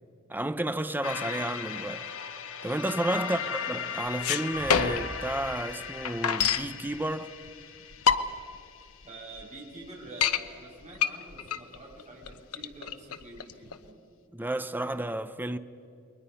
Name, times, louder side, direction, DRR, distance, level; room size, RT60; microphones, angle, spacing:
voice 1, 0.3-2.1 2.6-7.3 14.3-15.6, right 1 dB, 10° right, 0.7 m, -31 dB
sound 1, 1.0-9.5, left 6 dB, 65° left, 1.4 m, -38 dB
sound 2, 4.1-5.2 5.5-5.6 5.8-6.7 7.5-7.6 7.9-8.5 9.0-9.1 9.4-9.5 9.9-10.4 10.9-13.8, left 7 dB, 80° left, 0.9 m, -26 dB
sound 3, 4.6-6.0, equal, 35° left, 6.7 m, -42 dB
voice 2, 9.0-13.9, right 2 dB, 35° right, 7.0 m, -46 dB
29.5 x 22.5 x 5.6 m
head